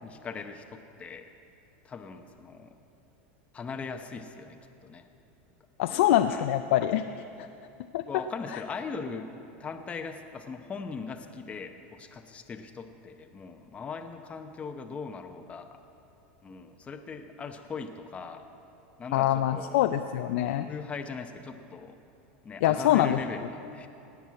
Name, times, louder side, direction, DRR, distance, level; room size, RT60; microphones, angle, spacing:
voice 1, 0.0-1.3 1.8-2.7 3.5-5.1 5.9-6.5 8.0-9.3 9.6-15.8 16.4-18.5 19.0-19.8 20.7-22.0 22.4-23.9, left 5 dB, 20° left, 6 dB, 0.7 m, -40 dB
voice 2, 5.8-7.0 7.4-7.5 7.9-8.1 19.1-20.7 22.6-23.2, left 12 dB, 75° left, 8 dB, 0.5 m, -24 dB
18.0 x 6.1 x 8.3 m, 2.7 s
supercardioid pair, 135°, 6 cm